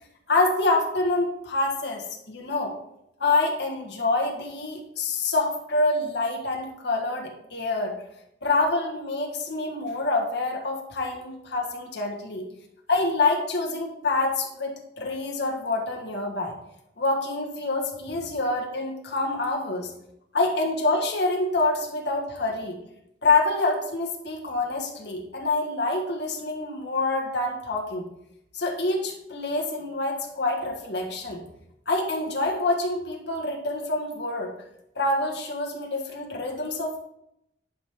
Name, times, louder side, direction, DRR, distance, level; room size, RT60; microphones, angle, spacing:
voice 1, 0.3-2.8 3.2-8.0 8.4-12.5 12.9-16.6 17.0-19.9 20.3-22.8 23.2-28.1 28.5-31.4 31.9-34.5 35.0-37.0, left 2 dB, 65° left, 0 dB, 1.7 m, -26 dB
11.0 x 4.7 x 3.7 m, 0.79 s
head